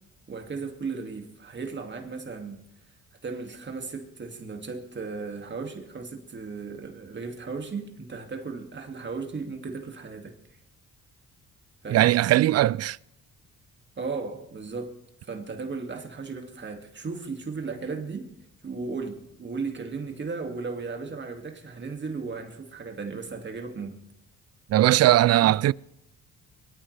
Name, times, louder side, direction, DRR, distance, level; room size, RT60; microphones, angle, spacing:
voice 1, 0.3-2.6 3.2-10.3 11.8-12.1 14.0-18.3 18.6-24.0, right 4 dB, 35° right, 2.4 m, -36 dB
voice 2, 11.9-13.0 24.7-25.7, right 14 dB, 55° right, 0.4 m, -19 dB
22.5 x 14.0 x 3.4 m
cardioid pair, 90°, 30 cm